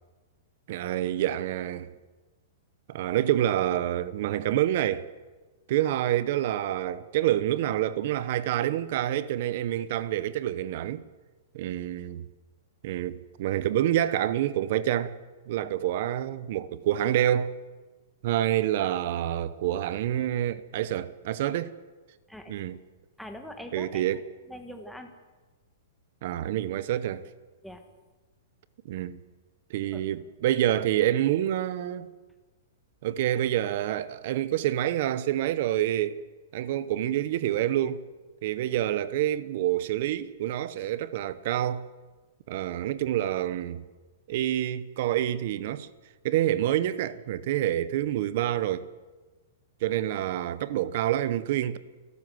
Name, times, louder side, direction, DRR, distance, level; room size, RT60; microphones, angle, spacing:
voice 1, 0.7-1.9 2.9-5.1 5.7-11.0 11.5-12.2 12.8-15.2 15.5-17.6 18.2-21.7 22.5-22.8 23.7-24.2 26.2-27.3 28.8-29.2 29.7-32.1 33.0-36.2 36.5-38.0 38.4-41.9 42.5-43.8 44.3-45.9 46.2-48.9 49.8-51.8, right 12 dB, 40° right, 0.9 m, -27 dB
voice 2, 23.2-24.1 24.5-25.1 27.6-27.8 29.9-30.0, left 1 dB, ahead, 1.5 m, -42 dB
29.5 x 12.5 x 7.8 m
hypercardioid pair, 175°, 0 cm